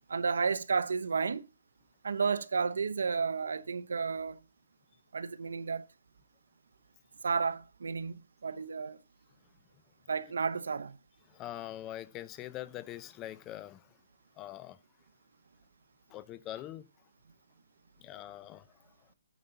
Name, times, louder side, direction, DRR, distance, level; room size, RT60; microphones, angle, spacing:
voice 1, 0.1-1.4 2.0-4.4 5.1-5.8 7.2-9.0 10.1-11.0, right 5 dB, 80° right, 0.7 m, -32 dB
voice 2, 11.3-13.9 14.4-14.8 16.1-16.9 18.0-18.7, left 13 dB, 15° left, 0.4 m, -43 dB
9.0 x 4.0 x 6.8 m
hypercardioid pair, 170°, 0 cm